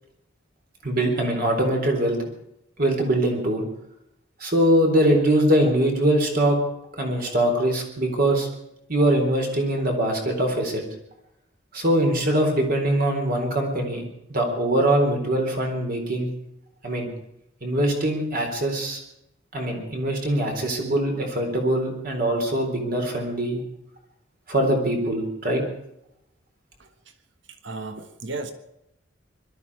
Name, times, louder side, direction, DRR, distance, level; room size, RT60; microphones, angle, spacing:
voice 1, 0.8-2.2 2.8-3.6 4.4-6.6 7.0-8.5 8.9-10.8 11.7-14.0 14.3-16.3 16.8-17.1 17.6-19.0 19.5-23.6 24.5-25.6, right 1 dB, 50° right, 2 dB, 4.0 m, -22 dB
voice 2, 27.6-28.5, right 3 dB, 75° right, 8 dB, 1.5 m, -34 dB
21.5 x 13.0 x 4.9 m, 0.80 s
head